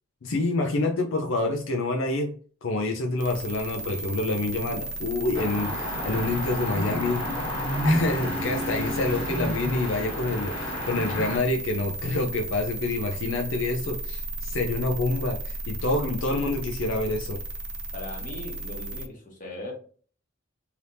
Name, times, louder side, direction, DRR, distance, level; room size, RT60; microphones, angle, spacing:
voice 1, 0.2-2.3 2.6-7.3 7.8-17.4, left 2 dB, 80° left, 3 dB, 0.5 m, -27 dB
sound 1, 3.2-19.1, right 2 dB, 65° right, 0.7 m, -35 dB
sound 2, 5.3-11.4, left 1 dB, 25° left, 1.5 m, -30 dB
voice 2, 17.9-19.7, left 1 dB, 45° left, -1 dB, 1.1 m, -39 dB
3.3 x 2.9 x 2.6 m, 0.43 s
head